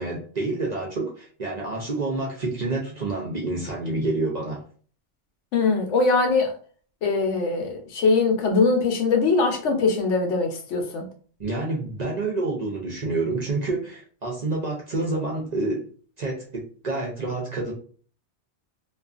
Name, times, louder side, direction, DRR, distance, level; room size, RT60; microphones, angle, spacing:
voice 1, 0.0-4.6 11.4-15.9 16.2-17.7, right 2 dB, 55° right, -2 dB, 0.5 m, -28 dB
voice 2, 5.5-6.5 7.0-11.1, left 4 dB, 80° left, 4 dB, 1.0 m, -22 dB
2.4 x 2.3 x 2.4 m, 0.43 s
omnidirectional pair, 1.2 m